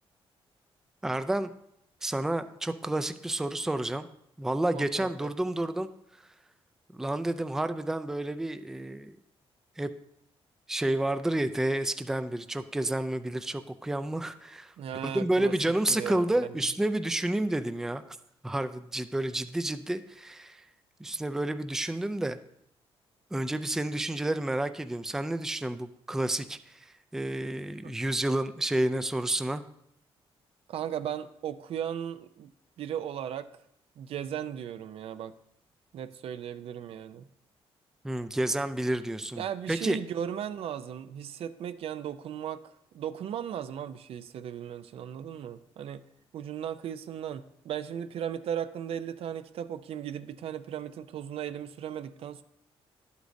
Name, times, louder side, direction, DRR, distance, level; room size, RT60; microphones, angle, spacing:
voice 1, 1.0-1.5 2.0-4.1 4.4-5.9 6.9-9.2 9.8-9.9 10.7-14.7 15.0-18.0 18.4-20.7 21.0-22.4 23.3-29.6 38.0-39.4 39.7-40.0, right 1 dB, 5° right, 10 dB, 0.3 m, -30 dB
voice 2, 4.7-5.3 14.8-15.5 15.9-16.5 27.8-28.0 30.7-32.5 32.8-33.5 34.0-35.3 35.9-37.3 39.4-46.1 46.3-52.4, right 9 dB, 70° right, 12 dB, 0.4 m, -36 dB
11.5 x 8.1 x 2.6 m, 0.74 s
cardioid pair, 115°, 10 cm